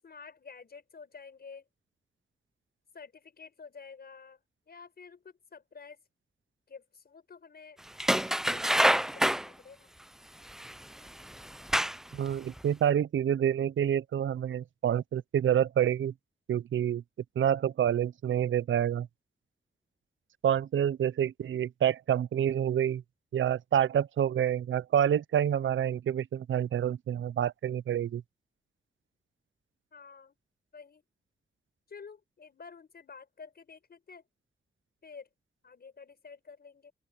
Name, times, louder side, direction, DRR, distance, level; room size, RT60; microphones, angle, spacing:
voice 1, 0.0-1.6 2.9-4.4 4.7-6.0 6.7-7.8 8.3-9.9 29.9-30.4 30.7-31.0 31.9-34.2 35.0-35.3 35.6-36.9, left 5 dB, 55° left, 6.6 m, -50 dB
sound 1, 8.0-9.5 10.6-10.7 11.4-12.1 12.6-12.7, equal, ahead, 0.3 m, -26 dB
voice 2, 12.1-16.1 16.5-17.0 17.4-19.1 20.4-23.0 23.3-28.2, right 9 dB, 80° right, 0.5 m, -28 dB
open air
wide cardioid pair, 160°, 20 cm